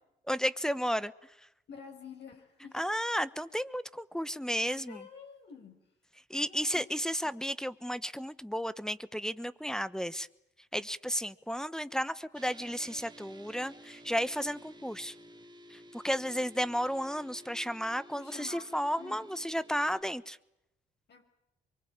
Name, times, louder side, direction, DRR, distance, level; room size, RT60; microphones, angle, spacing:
voice 1, 0.3-1.1 2.7-5.1 6.3-10.3 10.7-15.1 15.7-20.4, equal, 5° left, 16 dB, 1.1 m, -33 dB
voice 2, 1.7-2.8 4.9-5.8 6.4-6.9 7.2-7.3 18.1-18.7 19.0-19.3 21.1-21.2, left 6 dB, 60° left, 2 dB, 6.0 m, -49 dB
sound 1, 12.3-20.0, equal, 20° right, 2.6 m, -53 dB
24.0 x 23.5 x 8.9 m, 0.86 s
cardioid pair, 90°, 20 cm